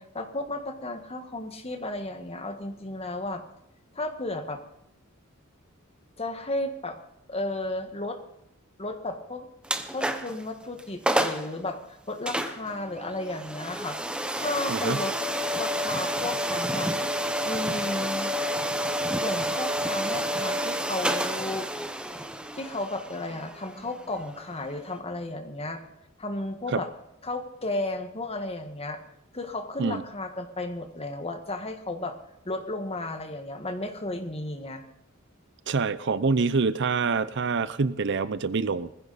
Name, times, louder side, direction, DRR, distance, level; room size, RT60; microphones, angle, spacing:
voice 1, 0.0-3.4 3.9-4.6 6.2-7.0 7.3-8.2 8.8-9.5 9.9-14.0 14.4-15.1 15.6-16.9 17.4-18.3 19.2-21.7 22.5-25.8 26.2-26.9 27.2-29.0 29.3-32.1 32.4-34.8, left 2 dB, 30° left, 6 dB, 1.6 m, -33 dB
sound 1, 9.6-10.4 10.8-10.9 11.1-11.5 12.3-25.0, equal, 5° right, 1.0 m, -29 dB
voice 2, 35.7-38.9, right 4 dB, 55° right, 15 dB, 0.6 m, -26 dB
20.0 x 15.5 x 4.2 m, 0.80 s
head